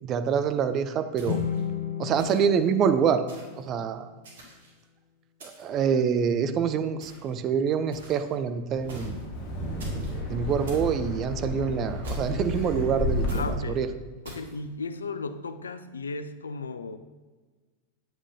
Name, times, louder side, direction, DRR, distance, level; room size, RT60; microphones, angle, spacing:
voice 1, 0.0-1.4 2.0-3.2 3.6-4.1 5.4-9.2 10.3-13.4 13.8-13.9, right 7 dB, 30° right, 9 dB, 0.4 m, -26 dB
sound 1, 1.2-4.5, left 8 dB, 55° left, 0.7 m, -34 dB
sound 2, 1.2-1.6 2.2-2.6 3.3-3.6 4.2-4.8 5.4-5.8 7.0-7.4 7.9-8.3 8.9-9.2 9.8-10.2 10.7-10.9 12.0-12.5 13.3-13.5 14.2-14.5, right 2 dB, 60° right, 1.5 m, -47 dB
Wind, 8.7-13.8, left 1 dB, 30° left, 1.9 m, -31 dB
voice 2, 13.3-13.8 14.2-17.0, left 3 dB, 70° left, 11 dB, 0.3 m, -35 dB
7.9 x 6.0 x 2.7 m, 1.3 s
figure-of-eight pair, 90°, 0 cm